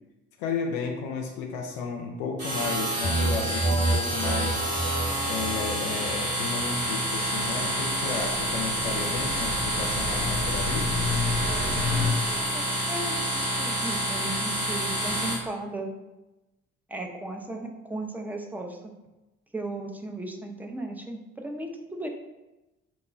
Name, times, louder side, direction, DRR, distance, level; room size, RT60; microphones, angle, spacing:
voice 1, 0.4-4.7 5.3-10.9, left 5 dB, 65° left, 2 dB, 0.5 m, -33 dB
sound 1, 2.4-15.3, right 1 dB, 75° right, 1.4 m, -28 dB
sound 2, 3.0-12.6, right 2 dB, 60° right, 1.4 m, -32 dB
sound 3, 7.4-12.1, left 3 dB, 30° right, 0.8 m, -31 dB
voice 2, 12.0-12.6 12.9-15.9 16.9-18.8 19.5-22.1, right 1 dB, 5° right, 2 dB, 0.3 m, -36 dB
3.0 x 2.2 x 4.1 m, 1.0 s
figure-of-eight pair, 45°, 38 cm